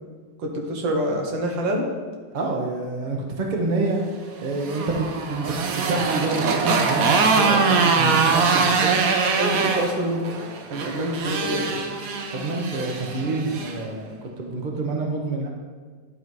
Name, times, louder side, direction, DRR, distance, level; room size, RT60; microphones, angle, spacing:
voice 1, 0.4-1.8 8.9-9.1 9.4-10.3 10.7-11.8, right 1 dB, 85° right, 1 dB, 1.8 m, -26 dB
voice 2, 2.3-4.0 4.4-9.0 12.3-15.5, right 2 dB, 35° right, 1 dB, 0.8 m, -27 dB
Motorcycle, 4.4-13.8, right 4 dB, 60° right, 1.0 m, -23 dB
10.5 x 4.1 x 4.7 m, 1.6 s
omnidirectional pair, 2.0 m